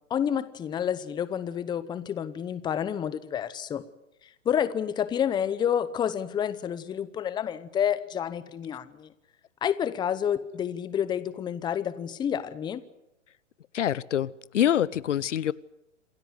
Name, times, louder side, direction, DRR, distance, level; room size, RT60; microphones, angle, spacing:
voice 1, 0.1-3.8 4.4-9.1 9.6-12.8, left 9 dB, 10° left, 0.8 m, -29 dB
voice 2, 13.7-15.5, left 10 dB, 70° left, 0.8 m, -25 dB
27.5 x 13.0 x 9.6 m
hypercardioid pair, 130°, 37 cm